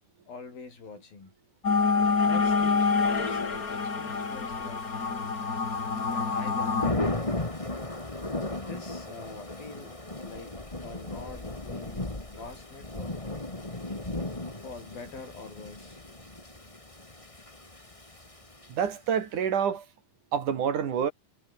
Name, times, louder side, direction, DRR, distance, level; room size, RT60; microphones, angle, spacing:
voice 1, 0.3-1.3 2.2-4.9 6.1-6.9 8.5-10.0 10.2-10.6 10.8-13.2 14.6-16.0, left 4 dB, 80° left, 9.2 m, -45 dB
sound 1, 1.6-6.9, left 4 dB, 30° left, 2.3 m, -27 dB
Thunder / Rain, 2.5-19.1, left 2 dB, 10° left, 2.0 m, -37 dB
voice 2, 18.7-19.9 20.3-21.1, right 8 dB, 60° right, 3.6 m, -27 dB
omnidirectional pair, 4.1 m